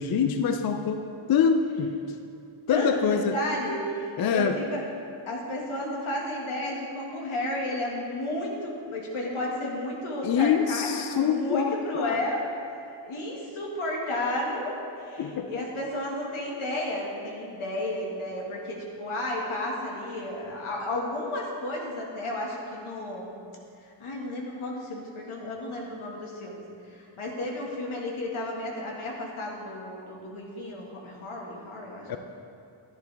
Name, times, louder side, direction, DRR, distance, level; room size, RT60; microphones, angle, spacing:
voice 1, 0.0-2.2 2.7-3.4 4.2-4.6 10.2-12.2 15.2-15.6 32.1-32.2, left 7 dB, 50° left, 7 dB, 0.5 m, -25 dB
voice 2, 2.7-4.8 5.3-12.5 13.0-23.4 23.8-26.6 26.9-32.2, left 1 dB, 90° left, -2 dB, 1.9 m, -32 dB
11.0 x 11.0 x 3.4 m, 2.5 s
wide cardioid pair, 160°, 48 cm